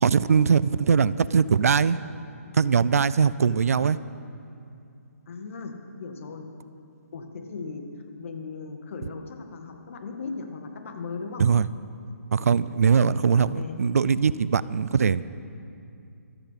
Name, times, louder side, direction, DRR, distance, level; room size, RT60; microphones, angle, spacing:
voice 1, 0.0-2.0 2.5-4.0 11.4-11.7 12.3-15.3, right 6 dB, 70° right, 17 dB, 0.5 m, -21 dB
voice 2, 3.6-3.9 5.3-6.5 7.1-11.5 13.0-13.8, left 4 dB, 55° left, 5 dB, 1.8 m, -38 dB
15.0 x 13.0 x 5.7 m, 2.5 s
hypercardioid pair, 145°, 8 cm